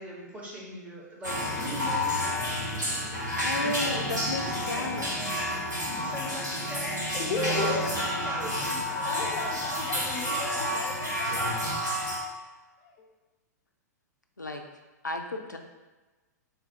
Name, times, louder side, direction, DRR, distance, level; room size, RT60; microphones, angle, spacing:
voice 1, 0.0-2.1 3.6-4.0 4.4-5.6 5.8-6.9 7.6-9.2, equal, 15° right, -4 dB, 1.0 m, -41 dB
sound 1, 1.2-12.2, left 1 dB, 90° right, 1.3 m, -30 dB
voice 2, 3.4-5.0 14.4-14.6 15.0-15.6, left 2 dB, 90° left, 3 dB, 0.4 m, -33 dB
voice 3, 7.1-7.9 9.0-11.4 12.8-13.0, left 4 dB, 35° left, 1 dB, 0.6 m, -34 dB
3.4 x 2.3 x 4.4 m, 1.2 s
figure-of-eight pair, 105°, 10 cm